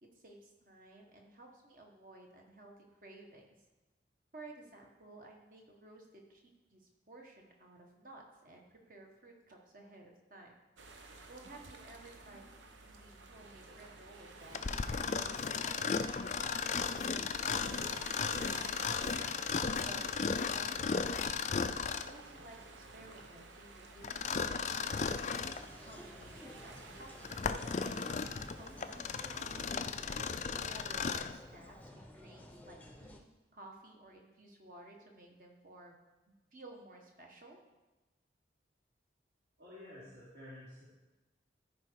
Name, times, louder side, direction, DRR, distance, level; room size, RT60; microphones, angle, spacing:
voice 1, 0.0-3.4 4.3-6.4 6.7-10.6 11.3-12.4 12.7-16.1 16.7-19.4 19.8-20.1 20.4-25.4 25.8-29.7 30.3-36.0 36.3-37.6, right 2 dB, 45° right, 0 dB, 1.6 m, -55 dB
sound 1, 10.8-29.7, right 3 dB, 85° right, 1.0 m, -53 dB
Mechanisms, 14.5-22.2 24.0-25.6 26.2-26.3 27.0-31.4, left 5 dB, 40° left, 0.4 m, -35 dB
sound 2, 25.3-33.2, left 1 dB, 10° left, 0.7 m, -53 dB
voice 2, 39.6-40.8, left 1 dB, 70° right, -11 dB, 3.2 m, -51 dB
13.5 x 5.1 x 4.7 m, 1.1 s
head